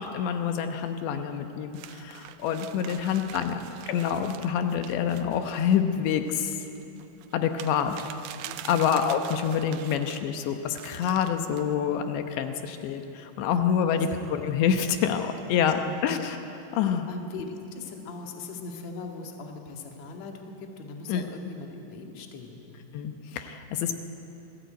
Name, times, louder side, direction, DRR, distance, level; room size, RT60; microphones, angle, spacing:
voice 1, 0.0-3.6 3.9-6.6 7.3-8.0 8.7-16.4 16.7-17.1 21.1-21.2 22.9-24.0, left 8 dB, 80° left, 7 dB, 3.3 m, -27 dB
sound 1, 1.7-10.2 10.7-11.7, right 12 dB, 85° right, 3.1 m, -45 dB
voice 2, 8.4-8.9 13.8-14.2 15.6-16.2 17.1-22.8, left 3 dB, 45° left, 2 dB, 2.8 m, -40 dB
27.0 x 18.0 x 9.3 m, 3.0 s
omnidirectional pair, 5.0 m